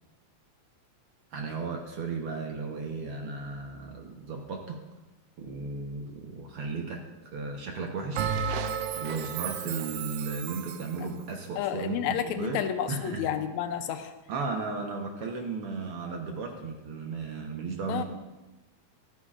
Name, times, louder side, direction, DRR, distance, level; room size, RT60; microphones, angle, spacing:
voice 1, 1.3-4.8 5.4-7.0 7.3-8.3 9.0-12.6 12.9-13.3 14.3-18.0, right 4 dB, 60° right, 1 dB, 1.8 m, -35 dB
Bell, 8.2-10.9, right 7 dB, 85° right, 1.3 m, -33 dB
voice 2, 11.6-14.1 17.9-18.0, left 10 dB, 80° left, 8 dB, 2.0 m, -31 dB
14.5 x 13.0 x 2.5 m, 1.1 s
omnidirectional pair, 3.3 m